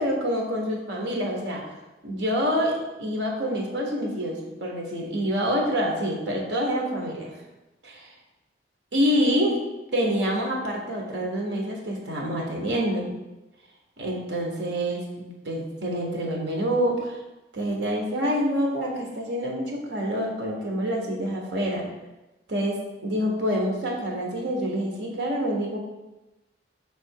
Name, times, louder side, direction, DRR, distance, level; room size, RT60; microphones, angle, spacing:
voice 1, 0.0-1.6 2.0-7.3 7.8-8.1 8.9-9.6 9.9-13.1 14.0-17.2 17.5-21.9 22.5-25.8, equal, 65° right, -1 dB, 1.3 m, -27 dB
6.0 x 3.5 x 4.6 m, 1.0 s
head